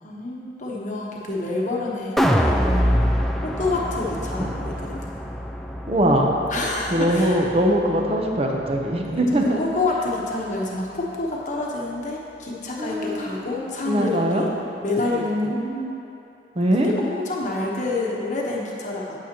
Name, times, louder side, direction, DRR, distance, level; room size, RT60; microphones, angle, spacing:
voice 1, 0.0-2.5 2.8-5.1 6.5-7.4 9.4-14.5 14.8-15.5 16.8-19.2, left 2 dB, 45° left, -3 dB, 1.1 m, -28 dB
sound 1, 2.2-8.4 8.8-8.9, equal, ahead, 0.3 m, -25 dB
voice 2, 5.9-6.4 6.9-9.6 12.8-13.4 13.8-14.5 15.2-16.0 16.5-16.9, equal, 35° right, 1 dB, 0.8 m, -22 dB
8.8 x 8.8 x 3.0 m, 3.0 s
head